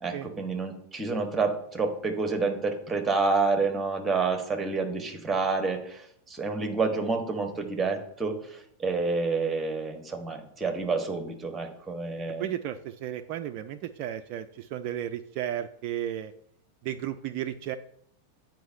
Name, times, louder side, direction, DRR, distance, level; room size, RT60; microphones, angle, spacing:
voice 1, 0.0-12.5, right 4 dB, 10° right, 5 dB, 1.2 m, -29 dB
voice 2, 12.4-16.3 16.8-17.8, right 11 dB, 45° right, 7 dB, 0.3 m, -34 dB
9.2 x 4.4 x 2.6 m, 0.70 s
figure-of-eight pair, 90°, 0 cm